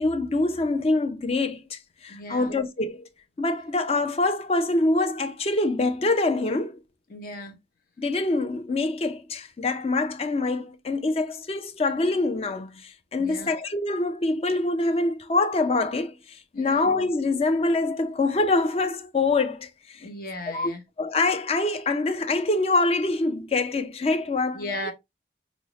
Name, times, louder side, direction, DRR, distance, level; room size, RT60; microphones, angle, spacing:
voice 1, 0.0-3.1 3.4-6.8 8.0-20.1 20.5-20.7 21.0-24.6, left 2 dB, 35° left, 0.4 m, -25 dB
voice 2, 2.1-2.5 7.1-7.6 13.2-13.5 16.5-16.9 20.0-20.8 24.5-24.9, left 1 dB, 55° left, 0.9 m, -36 dB
5.2 x 2.1 x 2.9 m
head